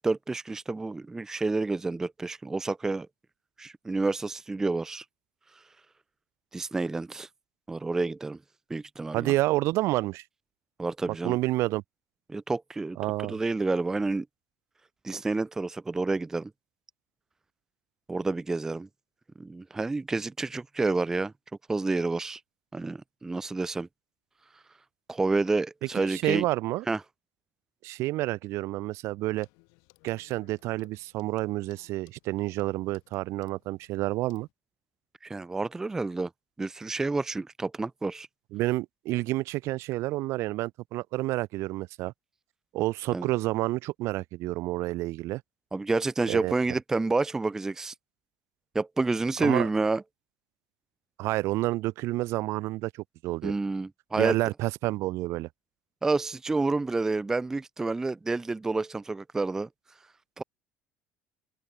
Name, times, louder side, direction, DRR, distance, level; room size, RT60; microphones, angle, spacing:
voice 1, 0.0-3.1 3.6-5.0 6.5-7.3 7.7-8.4 8.7-9.3 10.8-11.4 12.3-13.0 13.2-14.3 15.0-16.5 18.1-18.9 19.4-21.3 21.7-22.4 22.7-23.9 25.1-26.4 26.9-27.0 35.2-36.3 36.6-38.3 43.1-43.3 45.7-47.9 48.7-50.0 53.4-54.4 56.0-59.7 60.4-60.5, right 3 dB, 10° right, 0.4 m, -29 dB
voice 2, 9.1-10.2 11.2-11.8 13.0-13.4 25.9-26.8 27.8-29.5 30.0-34.5 38.5-42.1 42.7-45.4 46.3-46.5 49.4-49.7 51.2-52.9 53.2-53.5 54.2-55.5, right 18 dB, 55° right, 0.5 m, -29 dB
Clock, 29.4-34.5, left 35 dB, 85° left, 5.7 m, -62 dB
open air
cardioid pair, 160°, 6 cm